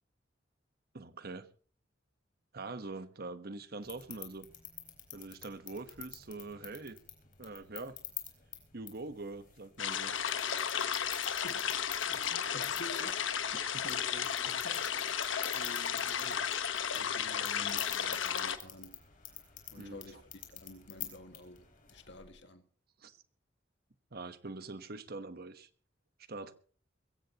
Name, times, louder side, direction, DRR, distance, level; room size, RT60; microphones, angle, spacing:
voice 1, 0.9-1.5 2.5-4.5 5.1-7.0 7.4-8.0 8.7-10.1 13.5-13.8 19.8-20.0 23.0-23.2 24.1-25.7 26.3-26.5, right 3 dB, 55° right, 1.2 m, -44 dB
sound 1, 3.8-22.3, left 10 dB, 45° left, 4.0 m, -49 dB
sound 2, 9.8-18.6, left 8 dB, 80° left, 1.2 m, -34 dB
voice 2, 12.1-13.2 13.6-15.3 15.5-19.0 19.7-22.7, left 1 dB, 65° left, 1.9 m, -50 dB
22.0 x 16.5 x 3.0 m
head